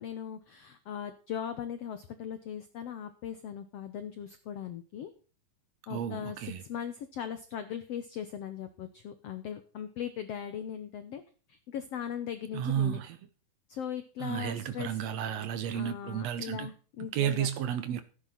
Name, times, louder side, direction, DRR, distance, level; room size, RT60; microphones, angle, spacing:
voice 1, 0.0-5.1 5.9-11.2 11.5-13.0 13.7-15.0 15.7-17.5, left 9 dB, 80° left, 1.4 m, -39 dB
voice 2, 5.9-6.6 12.5-13.2 14.2-16.7 17.1-18.0, right 9 dB, 85° right, 1.4 m, -32 dB
13.0 x 11.0 x 4.0 m
omnidirectional pair, 4.1 m